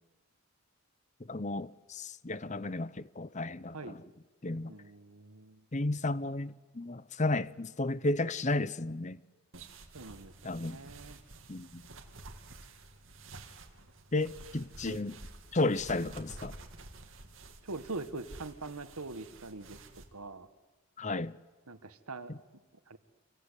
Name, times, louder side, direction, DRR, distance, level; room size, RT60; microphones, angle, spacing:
voice 1, 1.3-4.0 4.4-4.7 5.7-9.2 10.4-10.8 11.5-11.8 14.1-15.2 15.5-16.5 21.0-21.4 22.3-22.4, left 2 dB, 30° left, 0.8 m, -33 dB
voice 2, 4.7-5.6 9.9-11.2 14.9-15.0 17.6-19.8 20.1-20.5 21.7-22.3 22.9-23.0, right 3 dB, 85° right, 1.8 m, -43 dB
sound 1, 9.5-20.0, right 2 dB, 60° right, 2.9 m, -50 dB
27.5 x 24.5 x 8.4 m
head